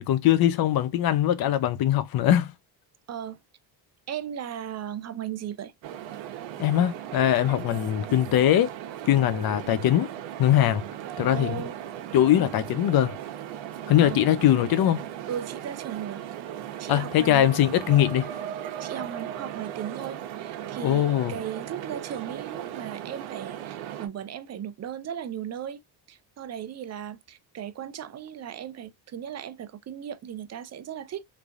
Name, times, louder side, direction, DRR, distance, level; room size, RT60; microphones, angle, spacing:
voice 1, 0.0-2.5 6.6-8.7 9.1-10.1 10.4-10.9 11.2-11.6 12.1-13.2 13.9-15.0 16.9-18.3 20.8-21.3, left 11 dB, 50° left, 0.7 m, -21 dB
voice 2, 3.1-3.4 4.1-5.7 11.3-11.7 12.3-12.5 14.0-14.3 15.3-16.2 16.8-17.5 18.8-25.8 26.1-31.2, right 9 dB, 35° right, 0.6 m, -36 dB
sound 1, 5.8-24.1, right 11 dB, 80° right, 0.9 m, -37 dB
3.3 x 3.3 x 2.5 m
cardioid pair, 105°, 46 cm